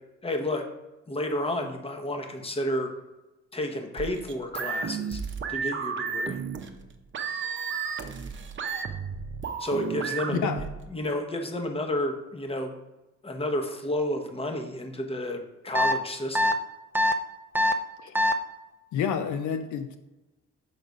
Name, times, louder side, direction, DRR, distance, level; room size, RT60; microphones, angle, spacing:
voice 1, 0.2-0.6 1.1-2.9 3.5-5.2 5.5-6.4 9.6-10.5 10.9-12.8 13.2-16.6, left 1 dB, 20° left, 4 dB, 1.0 m, -31 dB
sound 1, 4.0-10.9, right 6 dB, 40° right, 0.8 m, -33 dB
sound 2, 15.7-15.9 16.3-16.5 16.9-17.1 17.5-17.7 18.1-18.3, left 1 dB, 5° right, 0.5 m, -22 dB
voice 2, 18.9-20.0, left 7 dB, 75° left, 8 dB, 0.6 m, -29 dB
6.7 x 3.9 x 4.8 m, 1.0 s
cardioid pair, 90°, 30 cm